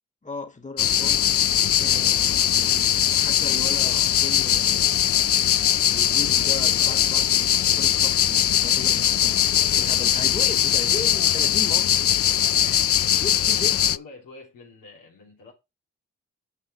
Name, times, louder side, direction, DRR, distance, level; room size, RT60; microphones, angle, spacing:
voice 1, 0.2-1.2 1.8-5.3 5.9-9.4 9.7-12.1 13.2-13.8, left 3 dB, 25° left, 2.0 m, -37 dB
sound 1, 0.8-14.0, left 10 dB, 45° left, 0.4 m, -21 dB
voice 2, 12.5-13.0 13.6-15.5, left 3 dB, 85° left, 3.0 m, -46 dB
6.5 x 5.5 x 5.4 m
supercardioid pair, 45°, 32 cm